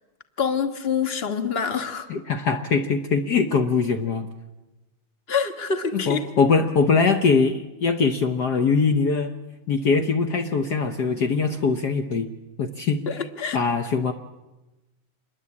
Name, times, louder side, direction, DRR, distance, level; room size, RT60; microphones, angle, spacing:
voice 1, 0.4-2.1 5.3-6.3 13.1-13.6, left 6 dB, 30° left, 8 dB, 1.2 m, -26 dB
voice 2, 2.1-4.3 5.9-9.3 9.7-12.3 12.6-13.0 13.5-14.1, left 5 dB, 70° left, 6 dB, 0.9 m, -22 dB
27.5 x 22.0 x 8.6 m, 1.1 s
omnidirectional pair, 3.4 m